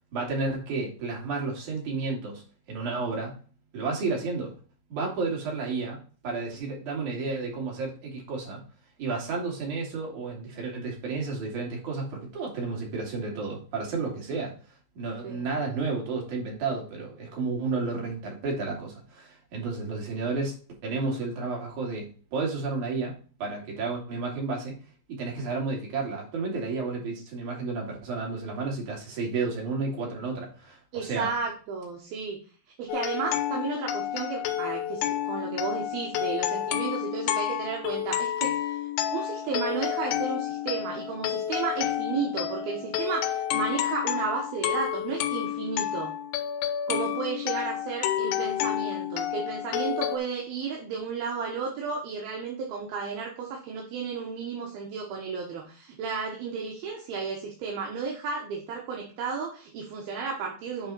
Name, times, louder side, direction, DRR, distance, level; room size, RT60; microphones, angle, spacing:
voice 1, 0.1-2.4 2.7-3.3 3.7-4.5 4.9-6.0 6.2-8.6 9.0-14.5 15.0-20.6 20.8-23.1 23.4-24.7 25.1-31.3, right 4 dB, 45° right, -1 dB, 3.6 m, -31 dB
voice 2, 30.9-32.4 32.8-46.2 46.9-60.9, right 5 dB, 70° right, 0 dB, 2.8 m, -33 dB
sound 1, 32.9-50.2, left 11 dB, 90° left, 3.2 m, -30 dB
9.0 x 4.8 x 4.3 m, 0.39 s
omnidirectional pair, 5.2 m